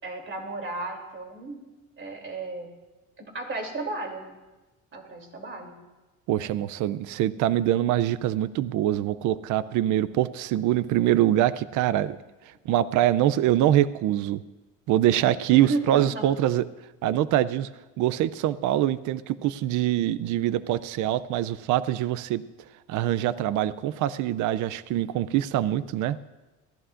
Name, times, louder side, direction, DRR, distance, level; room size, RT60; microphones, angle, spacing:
voice 1, 0.0-1.6 2.0-2.7 3.2-4.4 4.9-5.7 15.5-16.2, right 2 dB, 40° right, 2 dB, 3.0 m, -33 dB
voice 2, 6.3-12.2 12.7-14.4 14.9-16.7 17.0-17.7 18.0-22.4 22.9-26.2, right 12 dB, 70° right, 16 dB, 0.5 m, -24 dB
22.5 x 15.0 x 2.5 m, 1.1 s
cardioid pair, 105°, 31 cm